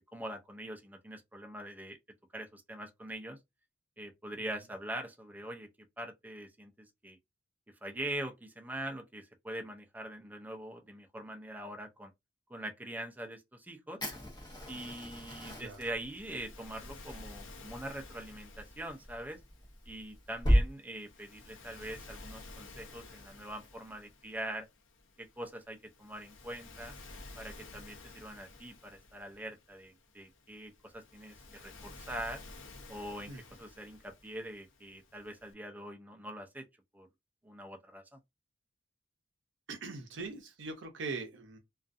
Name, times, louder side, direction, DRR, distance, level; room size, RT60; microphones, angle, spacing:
voice 1, 0.1-2.0 2.3-3.4 4.0-5.7 6.0-7.2 7.8-12.1 12.5-14.0 14.7-19.4 19.9-24.7 25.2-27.0 27.4-32.4 32.9-33.3 33.6-36.6 36.9-37.1 37.4-38.2, right 1 dB, 10° right, 0.4 m, -43 dB
Fire, 14.0-20.6, equal, 20° left, 0.9 m, -34 dB
Waves surf, 15.6-35.5, left 2 dB, 70° left, 0.7 m, -53 dB
voice 2, 39.7-41.6, right 3 dB, 65° right, 0.6 m, -41 dB
2.5 x 2.3 x 2.4 m
head